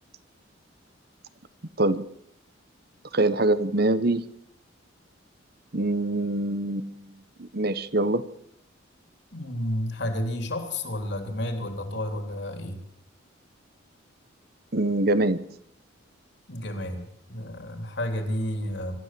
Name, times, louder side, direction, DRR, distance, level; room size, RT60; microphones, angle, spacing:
voice 1, 3.1-4.2 5.7-7.1 7.4-8.2 14.7-15.4, right 2 dB, 50° right, 14 dB, 1.1 m, -24 dB
voice 2, 9.3-12.8 16.5-19.0, left 1 dB, 60° left, 5 dB, 3.5 m, -31 dB
25.5 x 13.5 x 7.7 m, 0.75 s
head